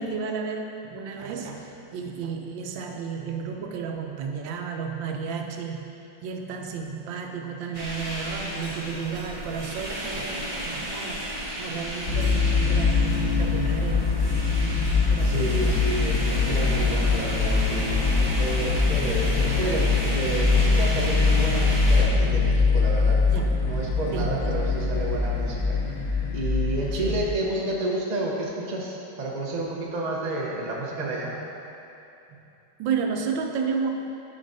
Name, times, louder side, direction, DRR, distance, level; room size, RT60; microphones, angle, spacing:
voice 1, 0.0-5.9 6.2-14.1 15.1-16.2 23.3-23.6 24.1-25.0 25.8-25.9 27.0-27.2 32.8-33.9, right 6 dB, 85° right, 3 dB, 1.4 m, -32 dB
sound 1, 7.7-22.0, equal, 20° right, 1.3 m, -33 dB
sound 2, 12.1-27.3, left 4 dB, 50° left, 0.5 m, -23 dB
voice 2, 15.2-23.2 23.6-25.8 26.3-31.4, right 2 dB, 40° right, -3 dB, 0.6 m, -30 dB
11.5 x 5.2 x 2.6 m, 2.7 s
omnidirectional pair, 2.0 m